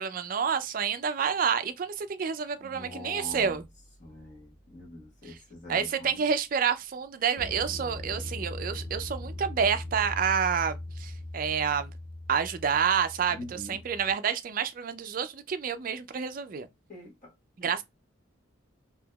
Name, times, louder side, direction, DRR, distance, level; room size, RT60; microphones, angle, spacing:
voice 1, 0.0-3.6 5.7-11.9 12.3-16.7 17.6-17.8, right 7 dB, 45° right, 0.3 m, -29 dB
voice 2, 2.6-3.6 4.0-6.1 13.3-13.8 16.9-17.3 17.6-17.7, left 1 dB, 40° left, 1.2 m, -44 dB
sound 1, 7.4-14.1, left 1 dB, 80° left, 0.9 m, -40 dB
3.6 x 2.8 x 2.2 m
head